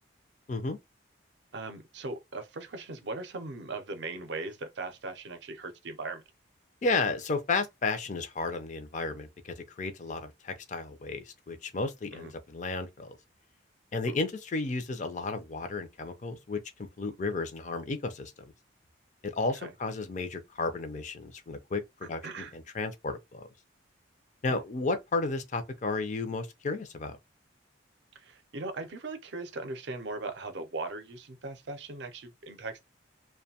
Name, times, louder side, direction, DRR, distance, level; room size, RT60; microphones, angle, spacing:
voice 1, 1.5-6.2 12.1-12.3 19.6-19.7 22.2-22.5 24.5-24.6 28.1-32.8, right 3 dB, 60° right, 0.5 m, -39 dB
voice 2, 6.8-13.2 13.9-18.5 19.2-23.4 24.4-27.2, left 3 dB, 40° left, 0.4 m, -33 dB
2.5 x 2.2 x 2.7 m
head